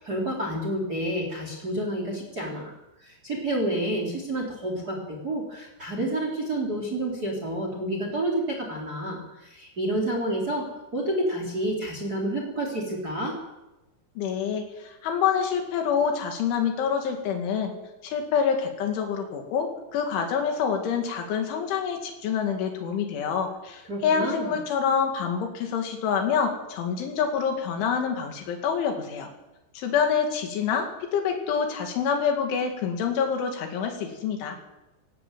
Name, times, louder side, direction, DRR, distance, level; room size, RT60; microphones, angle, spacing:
voice 1, 0.0-2.7 3.0-10.7 10.9-13.3 23.9-24.5, right 1 dB, 20° right, 2 dB, 3.6 m, -29 dB
voice 2, 14.2-17.7 18.0-29.3 29.7-34.6, left 7 dB, 85° left, 3 dB, 4.8 m, -26 dB
18.0 x 16.0 x 9.2 m, 1.0 s
omnidirectional pair, 5.3 m